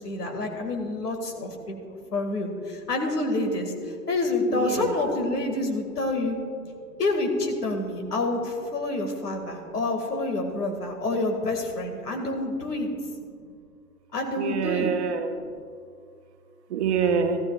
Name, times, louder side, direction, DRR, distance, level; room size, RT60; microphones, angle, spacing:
voice 1, 0.0-3.7 4.1-6.4 7.0-12.9 14.1-14.9, left 2 dB, 80° left, 3 dB, 2.1 m, -28 dB
voice 2, 4.5-5.0 14.4-15.3 16.7-17.4, right 6 dB, 45° right, 5 dB, 1.1 m, -26 dB
15.5 x 14.0 x 2.3 m, 2.3 s
hypercardioid pair, 130°, 47 cm